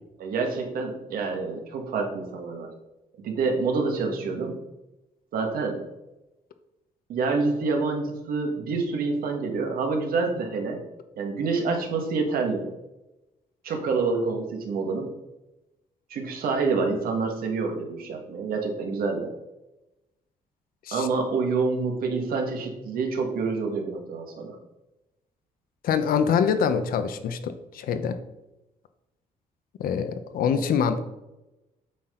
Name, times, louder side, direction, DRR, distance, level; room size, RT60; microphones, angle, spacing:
voice 1, 0.2-2.7 3.2-4.6 5.3-5.8 7.1-10.8 11.1-12.6 13.6-15.1 16.1-19.3 20.9-24.6 30.5-30.6, right 4 dB, 80° right, 3 dB, 1.7 m, -27 dB
voice 2, 25.8-28.2 29.8-31.0, left 7 dB, 80° left, 10 dB, 0.8 m, -25 dB
8.4 x 6.0 x 3.8 m, 0.99 s
cardioid pair, 170°, 15 cm